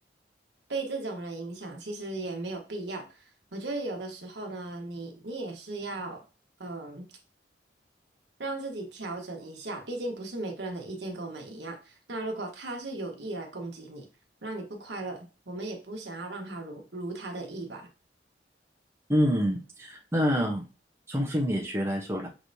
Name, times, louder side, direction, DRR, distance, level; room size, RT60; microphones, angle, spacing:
voice 1, 0.7-3.2 3.5-6.2 6.6-7.1 8.4-14.0 14.4-17.9, right 2 dB, 70° right, 2 dB, 1.2 m, -36 dB
voice 2, 19.1-20.6 21.1-22.3, equal, 15° right, -1 dB, 0.8 m, -27 dB
6.0 x 3.3 x 2.7 m, 0.32 s
head